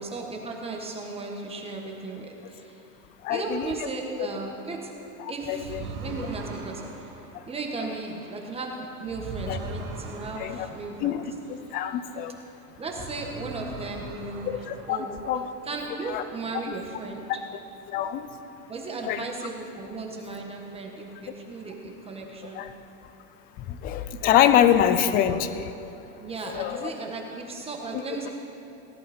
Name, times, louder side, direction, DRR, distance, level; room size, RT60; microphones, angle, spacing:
voice 1, 0.0-2.8 3.3-4.9 5.3-7.1 7.5-11.2 12.8-14.5 14.9-15.2 15.6-17.3 18.7-22.6 26.2-28.3, right 3 dB, 15° right, 1 dB, 1.4 m, -36 dB
voice 2, 3.2-3.7 4.2-4.3 5.2-5.8 6.2-6.3 9.5-9.6 10.4-10.7 11.0-11.3 11.7-12.3 14.5-15.0 15.2-15.5 16.1-16.2 17.9-18.3 19.1-19.2 22.5-22.7 23.7-25.7 26.4-26.9 27.9-28.2, left 10 dB, 25° left, 11 dB, 0.4 m, -25 dB
sound 1, 5.5-12.5 12.8-15.5, right 2 dB, 80° right, 2.3 m, -41 dB
18.0 x 11.0 x 4.3 m, 2.9 s
supercardioid pair, 145°, 42 cm